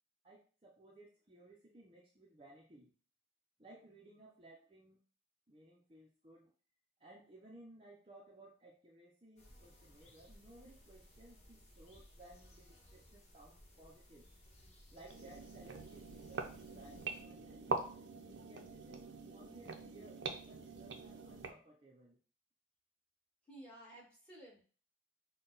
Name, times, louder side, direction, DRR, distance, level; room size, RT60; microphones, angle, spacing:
voice 1, 0.2-2.9 3.6-5.0 5.5-6.5 7.0-14.3 14.9-17.9 18.3-22.2, right 1 dB, 30° right, -3 dB, 0.7 m, -59 dB
sound 1, 9.4-17.2, equal, 40° left, 1.3 m, -61 dB
sound 2, 15.1-21.5, right 4 dB, 90° right, 0.6 m, -44 dB
voice 2, 23.5-24.6, right 1 dB, 5° left, -4 dB, 1.8 m, -54 dB
5.7 x 2.3 x 3.9 m, 0.39 s
head